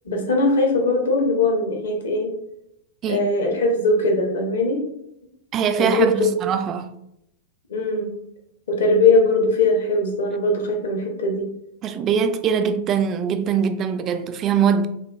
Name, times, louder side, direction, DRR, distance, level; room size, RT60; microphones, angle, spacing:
voice 1, 0.0-2.3 3.1-4.8 5.8-6.3 7.7-8.2 8.7-11.5, left 2 dB, 65° left, 0.9 m, -20 dB
voice 2, 5.5-6.9 11.8-14.9, right 7 dB, 30° right, 0.3 m, -22 dB
5.9 x 2.4 x 2.3 m
figure-of-eight pair, 95°, 0 cm